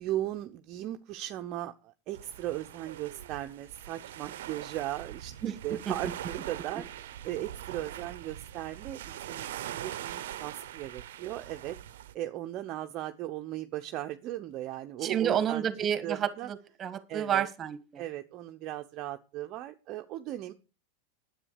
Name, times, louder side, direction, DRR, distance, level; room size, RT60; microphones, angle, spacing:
voice 1, 0.0-5.3 5.6-11.8 12.1-15.6 16.0-16.5 17.1-17.5 18.0-20.5, right 14 dB, 45° right, 6 dB, 0.9 m, -37 dB
sound 1, 2.1-12.1, right 12 dB, 75° right, 0.8 m, -42 dB
voice 2, 5.4-5.9 15.0-18.0, right 9 dB, 30° right, 12 dB, 1.6 m, -30 dB
9.9 x 8.1 x 6.7 m, 0.33 s
hypercardioid pair, 110°, 0 cm